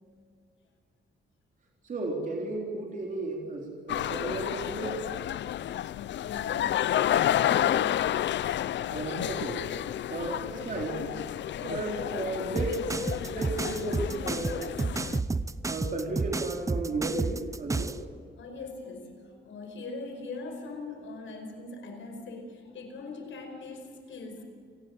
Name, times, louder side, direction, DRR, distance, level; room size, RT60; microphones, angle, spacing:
voice 1, 1.8-5.0 8.9-9.6 10.1-11.0 11.5-12.9 13.2-14.8 15.7-18.0, right 2 dB, 45° right, -1 dB, 3.9 m, -34 dB
sound 1, 3.9-15.2, left 11 dB, 70° left, 0.5 m, -30 dB
voice 2, 6.2-6.8 7.2-8.3 18.4-24.4, left 3 dB, 90° left, 6 dB, 5.1 m, -41 dB
sound 2, 12.6-18.0, right 3 dB, 15° right, 0.7 m, -31 dB
28.0 x 19.5 x 7.8 m, 2.1 s
wide cardioid pair, 160°, 19 cm